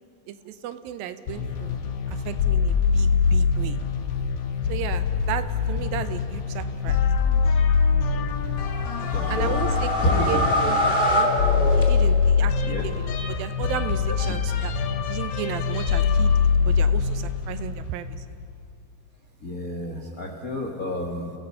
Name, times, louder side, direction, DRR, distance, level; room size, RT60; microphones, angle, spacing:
voice 1, 0.3-1.8 2.1-3.8 4.7-7.0 9.3-9.8 10.3-11.3 11.8-14.7 15.1-18.3, right 10 dB, 80° right, 11 dB, 2.4 m, -34 dB
sound 1, 1.3-18.6, left 5 dB, 75° left, 3.1 m, -24 dB
sound 2, 8.6-12.4, equal, 20° left, 1.8 m, -25 dB
voice 2, 9.1-9.6 10.0-10.3 12.7-12.8 19.4-21.3, left 1 dB, 60° left, 1 dB, 0.9 m, -29 dB
29.0 x 17.0 x 5.7 m, 2.4 s
omnidirectional pair, 4.4 m